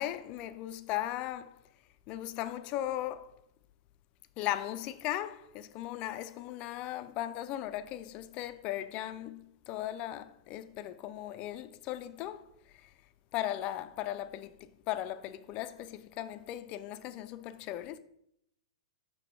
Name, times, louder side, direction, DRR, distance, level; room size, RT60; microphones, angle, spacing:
voice 1, 0.0-1.6 2.1-3.3 4.4-12.5 12.8-12.9 13.3-18.0, left 13 dB, 40° left, 0.4 m, -37 dB
6.8 x 3.1 x 4.6 m
hypercardioid pair, 110°, 3 cm